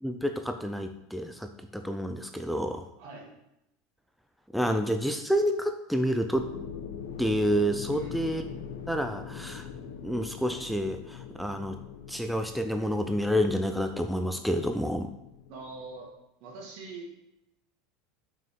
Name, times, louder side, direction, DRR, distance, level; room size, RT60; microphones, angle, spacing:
voice 1, 0.0-2.9 4.5-6.5 7.2-8.4 8.9-9.7 10.0-11.8 12.1-15.1, equal, ahead, 6 dB, 0.5 m, -29 dB
voice 2, 3.0-3.3 7.9-8.4 15.5-16.1 16.4-17.1, right 3 dB, 60° right, -1 dB, 2.6 m, -43 dB
sound 1, 6.3-16.1, left 7 dB, 75° left, 0.8 m, -43 dB
7.2 x 5.9 x 3.9 m, 0.84 s
hypercardioid pair, 100°, 0 cm